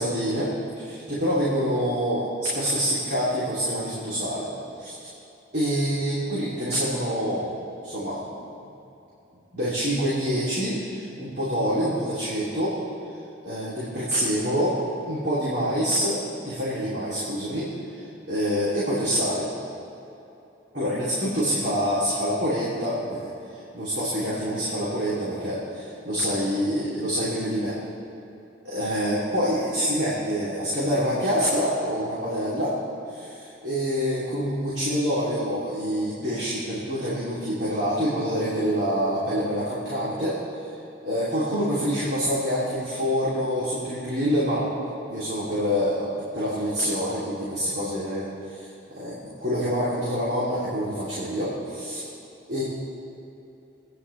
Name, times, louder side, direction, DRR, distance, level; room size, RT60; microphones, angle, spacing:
voice 1, 0.0-4.5 4.8-5.0 5.5-7.6 7.8-8.2 9.5-12.8 13.4-14.8 15.1-19.5 20.7-27.8 28.6-32.8 33.1-40.4 41.0-44.7 45.1-48.7 48.9-52.0 52.5-52.6, equal, 60° right, -9 dB, 3.1 m, -26 dB
25.0 x 9.9 x 3.4 m, 2.9 s
head